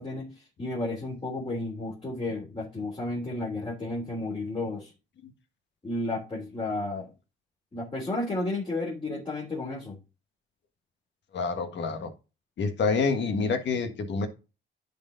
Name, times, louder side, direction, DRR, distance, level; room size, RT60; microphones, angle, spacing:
voice 1, 0.0-4.9 5.8-7.1 7.7-10.0, left 2 dB, 25° left, -5 dB, 3.2 m, -32 dB
voice 2, 11.3-12.1 12.6-14.3, left 4 dB, 65° left, 7 dB, 1.6 m, -27 dB
10.0 x 4.5 x 3.9 m, 0.30 s
cardioid pair, 90°, 20 cm